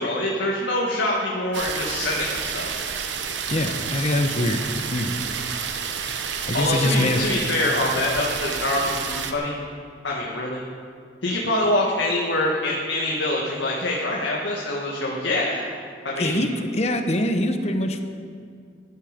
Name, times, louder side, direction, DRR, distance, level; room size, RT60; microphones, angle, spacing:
voice 1, 0.0-2.8 6.5-9.5 10.0-10.6 11.2-15.7 16.0-16.4, left 1 dB, 85° left, -3 dB, 1.7 m, -25 dB
sound 1, 1.5-9.3, right 6 dB, 85° right, 1.0 m, -30 dB
voice 2, 3.5-4.6 4.9-5.1 6.5-7.2 16.2-18.0, left 1 dB, 35° left, 6 dB, 1.0 m, -23 dB
17.0 x 11.5 x 5.2 m, 2.2 s
head